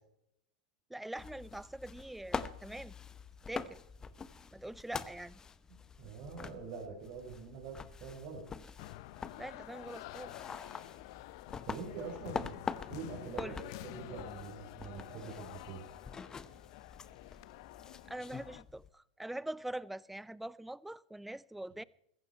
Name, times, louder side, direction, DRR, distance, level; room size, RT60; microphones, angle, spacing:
voice 1, 0.9-2.9 3.5-3.8 4.5-5.4 9.4-10.4 13.4-13.6 18.1-21.8, right 1 dB, 5° right, 0.4 m, -43 dB
sound 1, 1.1-18.9, left 5 dB, 20° left, 0.8 m, -45 dB
voice 2, 6.0-8.4 11.7-12.6 12.9-15.9, right 5 dB, 50° right, 4.6 m, -45 dB
sound 2, 8.8-18.6, left 18 dB, 60° left, 0.6 m, -49 dB
15.0 x 15.0 x 4.4 m
hypercardioid pair, 120°, 3 cm